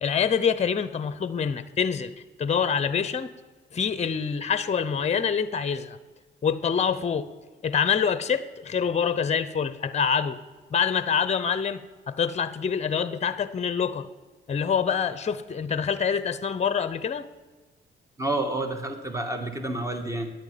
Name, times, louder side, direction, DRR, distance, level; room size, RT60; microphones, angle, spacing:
voice 1, 0.0-2.1 2.4-3.3 3.7-6.0 6.4-7.3 7.6-10.4 10.7-11.8 12.1-14.1 14.5-17.3, left 7 dB, 35° left, 14 dB, 0.8 m, -26 dB
voice 2, 18.2-20.3, right 2 dB, 15° right, 6 dB, 1.9 m, -29 dB
10.5 x 9.3 x 9.2 m, 1.3 s
cardioid pair, 90°, 20 cm